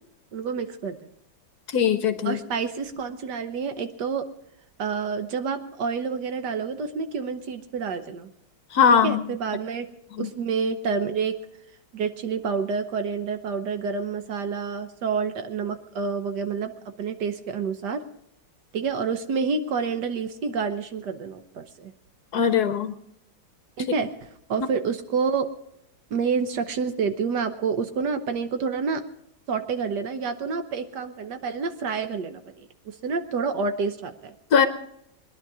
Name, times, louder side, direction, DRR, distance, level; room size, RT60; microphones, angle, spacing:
voice 1, 0.3-1.0 2.2-4.2 4.8-8.3 8.9-9.9 10.2-11.4 11.9-16.7 17.0-18.0 18.7-21.9 23.8-24.1 24.5-25.5 26.1-29.0 29.5-34.3, right 5 dB, 65° right, 9 dB, 1.5 m, -28 dB
voice 2, 1.7-2.4 8.7-9.2 10.2-10.3 22.3-22.9 34.5-34.7, left 7 dB, 65° left, 10 dB, 1.2 m, -20 dB
21.5 x 11.0 x 4.8 m, 0.77 s
omnidirectional pair, 2.0 m